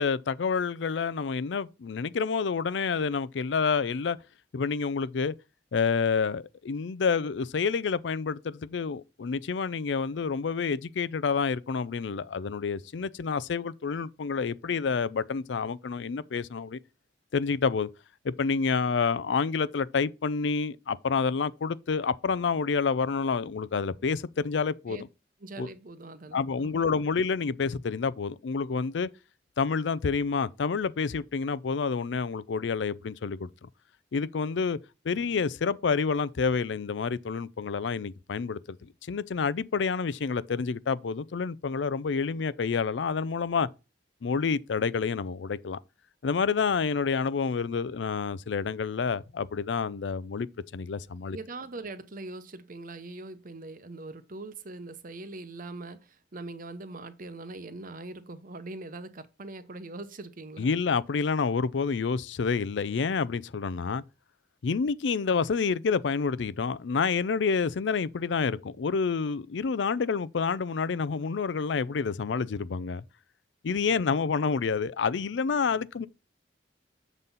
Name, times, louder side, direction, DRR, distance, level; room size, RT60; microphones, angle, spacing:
voice 1, 0.0-4.2 4.5-5.3 5.7-16.8 17.3-17.9 18.2-25.0 25.6-25.7 26.3-29.1 29.6-33.7 34.1-34.8 35.0-43.7 44.2-45.8 46.2-50.5 50.7-51.4 60.6-64.0 64.6-73.0 73.6-76.1, left 5 dB, 85° left, 0.5 m, -28 dB
voice 2, 25.4-26.9 51.3-60.7, right 2 dB, 50° right, 0.8 m, -42 dB
7.3 x 4.0 x 5.4 m
head